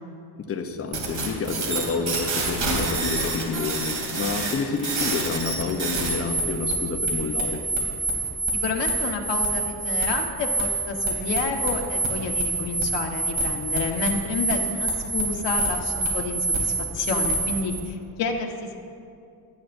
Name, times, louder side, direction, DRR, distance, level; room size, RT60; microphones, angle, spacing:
voice 1, 0.4-7.6, left 4 dB, 35° left, 5 dB, 0.9 m, -29 dB
sound 1, 0.9-17.8, right 3 dB, 50° right, 3.1 m, -27 dB
voice 2, 8.6-18.8, left 4 dB, 80° left, 2 dB, 1.5 m, -29 dB
25.0 x 9.6 x 2.7 m, 2.4 s
cardioid pair, 170°, 42 cm